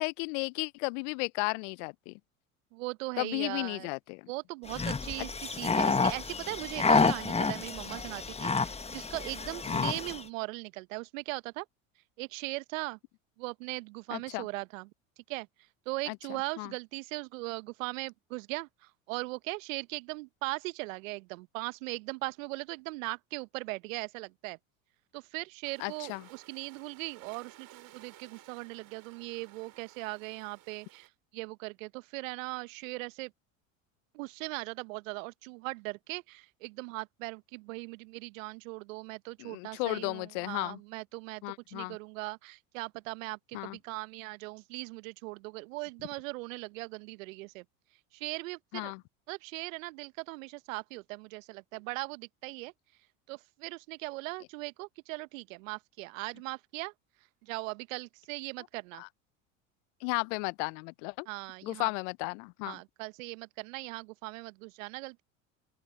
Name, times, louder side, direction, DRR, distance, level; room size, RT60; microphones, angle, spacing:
voice 1, 0.0-2.1 3.2-4.3 5.2-5.3 9.7-9.9 14.1-14.4 16.1-16.2 16.6-16.7 25.8-26.2 39.4-40.8 41.4-42.0 43.5-43.8 48.7-49.0 59.0-59.1 60.0-61.3 61.6-62.8, left 32 dB, 60° left, 0.6 m, -34 dB
voice 2, 2.7-3.9 4.3-11.6 12.2-13.0 13.4-14.9 15.3-15.5 15.9-24.6 25.1-33.3 34.1-47.6 48.1-48.9 49.3-52.7 53.3-56.9 57.4-59.0 61.3-61.9 62.6-65.2, right 24 dB, 70° right, 1.1 m, -39 dB
sound 1, 4.7-10.2, left 4 dB, 15° left, 1.4 m, -29 dB
sound 2, 25.6-31.1, right 15 dB, 50° right, 7.5 m, -56 dB
open air
hypercardioid pair, 75°, 41 cm